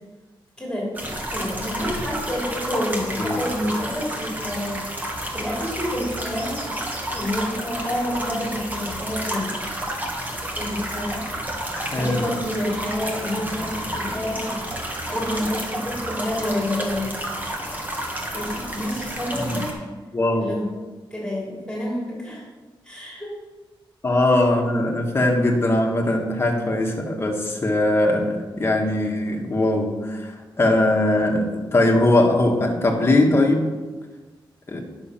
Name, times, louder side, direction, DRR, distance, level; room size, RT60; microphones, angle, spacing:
voice 1, 0.6-4.8 5.3-6.7 7.1-9.5 10.5-11.2 11.8-17.2 18.3-19.7 20.3-20.7 21.1-22.4 22.8-23.3, left 1 dB, 10° left, -5 dB, 3.4 m, -29 dB
sound 1, 0.9-19.7, right 1 dB, 20° right, 1.6 m, -30 dB
voice 2, 3.2-3.5 11.7-12.3 19.4-19.6 20.1-20.5 24.0-33.7 34.7-34.8, left 1 dB, 30° left, 1 dB, 1.6 m, -21 dB
10.5 x 6.4 x 5.8 m, 1.3 s
wide cardioid pair, 155°, 9 cm